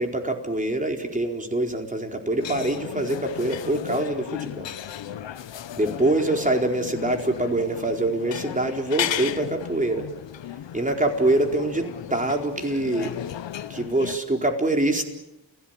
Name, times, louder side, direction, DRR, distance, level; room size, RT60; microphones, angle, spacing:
voice 1, 0.0-4.7 5.7-10.1 10.7-13.1 13.7-15.0, right 2 dB, 20° right, 3 dB, 4.4 m, -24 dB
sound 1, 2.4-14.2, left 10 dB, 85° left, 1.2 m, -35 dB
29.5 x 17.0 x 9.1 m, 0.93 s
cardioid pair, 95°, 43 cm